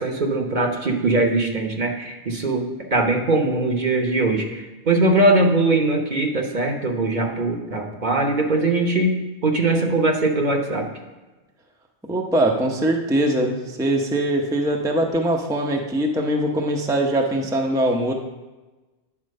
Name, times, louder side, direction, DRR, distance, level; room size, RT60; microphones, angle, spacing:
voice 1, 0.0-2.6 2.9-9.2 9.4-10.9, right 2 dB, 45° right, 2 dB, 1.0 m, -21 dB
voice 2, 12.0-18.1, right 1 dB, 5° right, 1 dB, 0.6 m, -22 dB
9.8 x 4.4 x 6.4 m, 1.2 s
omnidirectional pair, 1.1 m